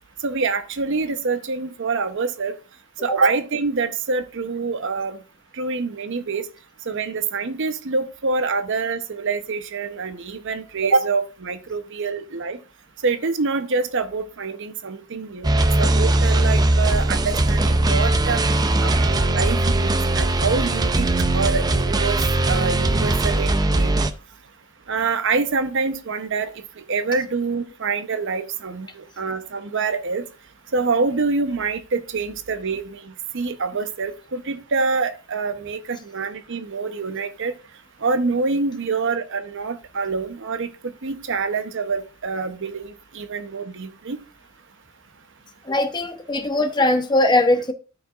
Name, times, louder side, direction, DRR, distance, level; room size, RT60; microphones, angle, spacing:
voice 1, 0.2-2.5 3.0-5.2 5.6-6.4 6.9-12.6 13.0-15.5 15.8-18.4 18.8-21.1 21.3-22.2 22.5-24.0 24.9-26.5 26.9-30.2 30.7-37.5 38.0-44.2, right 4 dB, 60° right, 0.8 m, -26 dB
sound 1, 15.4-24.1, right 2 dB, 20° right, 0.5 m, -20 dB
voice 2, 45.7-47.7, left 2 dB, 20° left, 0.7 m, -20 dB
13.0 x 5.0 x 2.4 m
head